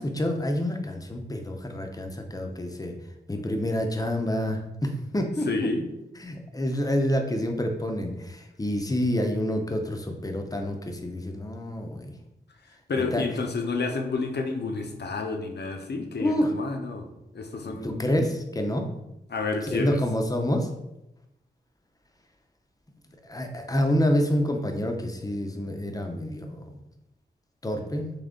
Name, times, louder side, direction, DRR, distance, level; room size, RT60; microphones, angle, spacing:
voice 1, 0.0-2.9 3.3-5.7 6.2-12.1 13.0-13.2 16.2-16.5 17.6-18.9 19.7-20.7 23.2-26.8 27.6-28.1, left 1 dB, 20° left, 4 dB, 0.6 m, -28 dB
voice 2, 5.5-5.8 12.9-17.1 17.3-18.1 19.3-20.0, left 3 dB, 65° left, 4 dB, 0.6 m, -30 dB
3.6 x 3.2 x 3.7 m, 0.88 s
wide cardioid pair, 100°, 18 cm